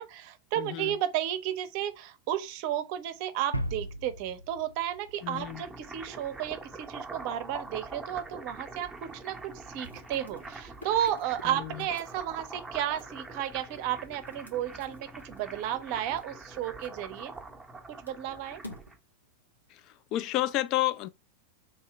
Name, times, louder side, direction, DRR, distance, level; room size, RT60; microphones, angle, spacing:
voice 1, 0.0-17.3 18.0-18.6, right 11 dB, 45° right, 0.6 m, -33 dB
voice 2, 0.6-0.9 5.2-5.6 11.4-11.8 20.1-21.1, left 15 dB, 40° left, 0.3 m, -30 dB
sound 1, 3.5-6.2, equal, 90° right, 0.4 m, -37 dB
sound 2, 5.1-19.0, right 3 dB, 10° right, 0.7 m, -44 dB
sound 3, 9.6-17.8 18.0-20.2, left 1 dB, 85° left, 1.0 m, -51 dB
3.2 x 2.7 x 4.3 m
figure-of-eight pair, 90°, 0 cm